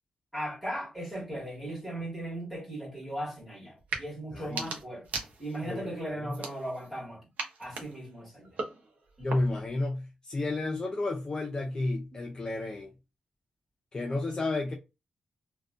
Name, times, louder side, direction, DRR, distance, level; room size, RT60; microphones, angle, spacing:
voice 1, 0.3-5.1 5.4-7.2 7.6-8.5 9.2-9.3 12.1-12.2, right 1 dB, 5° right, 1.3 m, -37 dB
sound 1, 3.8-4.1 4.4-5.7 6.3-7.0 7.4-9.7, right 3 dB, 75° right, 0.7 m, -39 dB
voice 2, 4.3-4.8 5.7-6.3 9.2-12.9 13.9-14.7, left 2 dB, 30° left, 0.4 m, -32 dB
2.5 x 2.2 x 2.4 m
wide cardioid pair, 130°, 3 cm